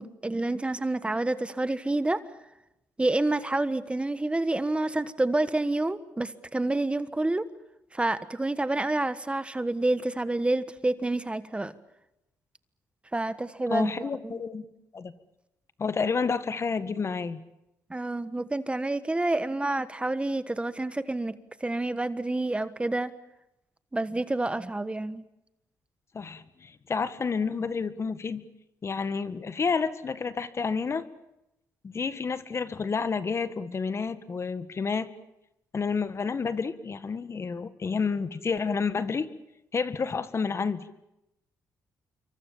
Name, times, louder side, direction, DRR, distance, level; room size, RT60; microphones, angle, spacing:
voice 1, 0.0-2.2 3.0-7.4 7.9-11.7 13.1-14.4 17.9-23.1 23.9-25.2, right 2 dB, 15° right, 1.4 m, -28 dB
voice 2, 13.7-14.7 14.9-15.1 15.8-17.4 26.1-28.4 28.8-31.0 31.8-35.1 35.7-39.3 39.7-40.9, left 5 dB, 40° left, 1.7 m, -30 dB
26.5 x 24.0 x 7.3 m
cardioid pair, 75°, 7 cm